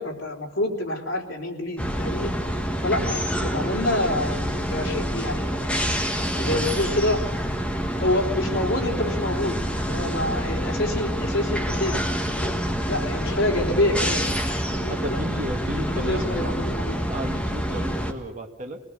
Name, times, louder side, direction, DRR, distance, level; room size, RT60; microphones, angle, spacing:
voice 1, 0.0-2.3 2.8-5.5 6.3-7.2 8.0-12.5 12.9-14.3 14.7-15.2 15.7-17.0, left 1 dB, 85° left, 0 dB, 3.7 m, -27 dB
sound 1, 1.8-18.1, equal, 5° left, 1.5 m, -27 dB
voice 2, 14.9-16.5 17.1-18.8, equal, 40° right, 1 dB, 1.9 m, -33 dB
24.5 x 19.5 x 6.7 m, 0.99 s
head